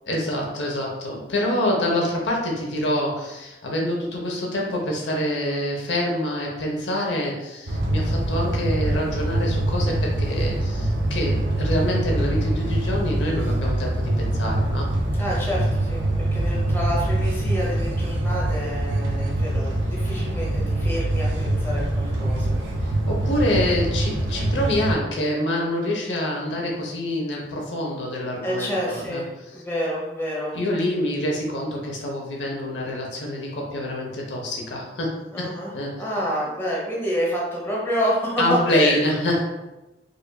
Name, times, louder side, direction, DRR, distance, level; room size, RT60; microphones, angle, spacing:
voice 1, 0.1-14.9 22.8-29.2 30.5-36.0 38.4-39.4, left 1 dB, 80° left, -1 dB, 0.8 m, -26 dB
sound 1, 7.7-24.9, right 1 dB, 85° right, 0.6 m, -24 dB
voice 2, 15.2-22.6 28.4-30.5 35.3-35.7 36.0-39.1, equal, 15° left, -5 dB, 0.9 m, -28 dB
4.8 x 2.6 x 2.3 m, 1.0 s
head